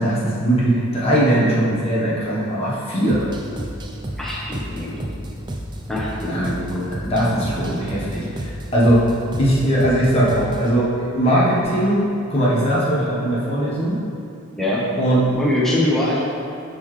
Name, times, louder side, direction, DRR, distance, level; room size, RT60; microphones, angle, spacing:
voice 1, 0.0-3.3 6.3-6.5 6.9-9.1 9.4-12.0 12.3-14.0 15.0-15.4, right 1 dB, 30° left, -7 dB, 1.1 m, -19 dB
sound 1, 3.1-10.8, right 1 dB, 20° right, 0.4 m, -31 dB
voice 2, 4.2-5.1 5.9-6.9 8.2-8.3 14.6-14.9 15.4-16.2, left 1 dB, ahead, -6 dB, 0.9 m, -23 dB
11.0 x 3.9 x 3.2 m, 2.5 s
head